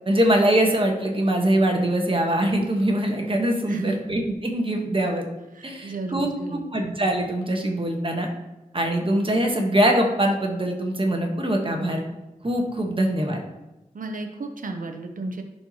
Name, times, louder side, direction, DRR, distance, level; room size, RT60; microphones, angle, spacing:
voice 1, 0.1-5.2 5.6-8.3 8.7-12.0 12.4-13.4, right 1 dB, 40° right, 2 dB, 1.3 m, -23 dB
voice 2, 5.5-6.7 13.9-15.4, right 2 dB, 70° right, 5 dB, 0.8 m, -33 dB
11.0 x 4.5 x 3.0 m, 1.0 s
cardioid pair, 55°, 14 cm